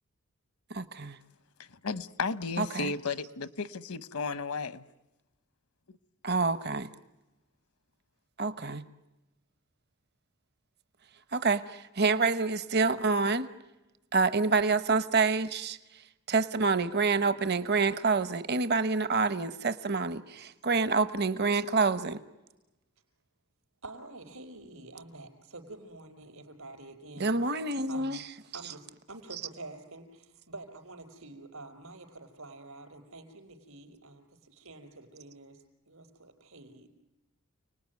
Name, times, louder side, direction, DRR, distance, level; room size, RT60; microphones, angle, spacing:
voice 1, 0.7-1.2 2.6-2.9 6.2-6.9 8.4-8.8 11.3-13.5 14.1-15.8 16.3-22.2 27.2-28.2, right 4 dB, 50° right, 1.0 m, -27 dB
voice 2, 1.8-4.8, left 4 dB, 80° left, 1.0 m, -34 dB
voice 3, 23.8-27.5 27.9-28.2 28.5-36.9, right 2 dB, 70° right, 5.1 m, -48 dB
30.0 x 20.0 x 9.5 m
head